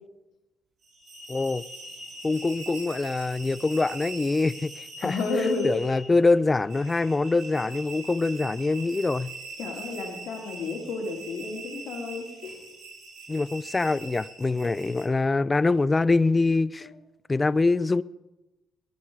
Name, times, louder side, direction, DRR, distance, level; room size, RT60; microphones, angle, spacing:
sound 1, 0.8-15.1, right 3 dB, 65° right, 3.9 m, -42 dB
voice 1, 1.3-1.6 2.2-5.2 5.6-9.3 13.3-16.9 17.3-18.0, left 3 dB, 25° left, 0.4 m, -24 dB
voice 2, 5.0-5.7 9.6-12.6 16.8-16.9, left 3 dB, 75° left, 3.0 m, -31 dB
21.5 x 9.3 x 4.8 m
cardioid pair, 90°, 0 cm